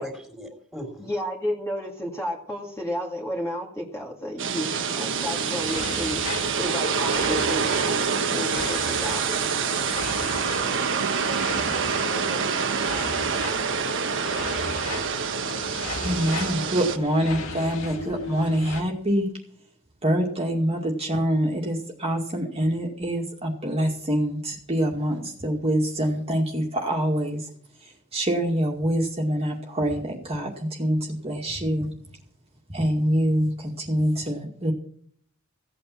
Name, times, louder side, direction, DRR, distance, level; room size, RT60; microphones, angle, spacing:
voice 1, 0.0-1.1 11.4-13.1, equal, ahead, 4 dB, 3.6 m, -40 dB
voice 2, 1.0-6.2 6.6-8.0 8.2-9.5, equal, 15° left, -1 dB, 2.2 m, -32 dB
sound 1, 4.4-17.0, right 5 dB, 60° right, 1.3 m, -26 dB
sound 2, 5.2-18.8, left 3 dB, 70° left, 2.0 m, -37 dB
voice 3, 16.0-19.3 20.0-27.4 27.8-31.9 32.7-34.7, equal, 30° right, -1 dB, 2.2 m, -25 dB
16.0 x 9.0 x 5.9 m, 0.62 s
head